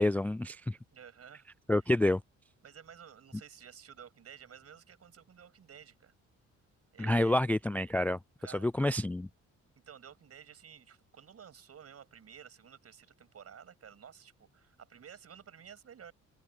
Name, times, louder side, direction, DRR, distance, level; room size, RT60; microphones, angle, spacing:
voice 1, 0.0-0.8 1.7-2.2 7.0-8.2 8.5-9.3, left 1 dB, 5° left, 0.3 m, -28 dB
voice 2, 0.9-1.5 1.8-1.9 2.6-6.1 6.9-7.4 8.4-8.7 9.9-16.1, right 8 dB, 50° right, 7.5 m, -53 dB
open air
cardioid pair, 90°, 30 cm